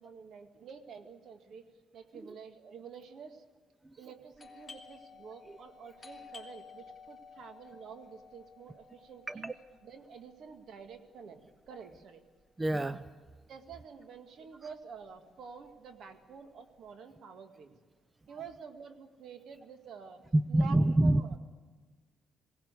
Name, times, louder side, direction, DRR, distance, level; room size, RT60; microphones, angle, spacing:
voice 1, 0.0-1.7 1.9-3.4 4.0-9.5 9.8-12.2 13.5-17.8 18.3-20.2 20.5-21.4, right 6 dB, 70° right, 7 dB, 2.0 m, -49 dB
Doorbell, 4.3-13.7 14.0-14.1 14.7-15.1 15.4-16.8, left 5 dB, 20° left, 3.4 m, -54 dB
voice 2, 12.6-13.0 20.3-21.4, right 1 dB, 20° right, 14 dB, 0.6 m, -26 dB
20.5 x 18.0 x 8.3 m, 1.4 s
cardioid pair, 90°, 0 cm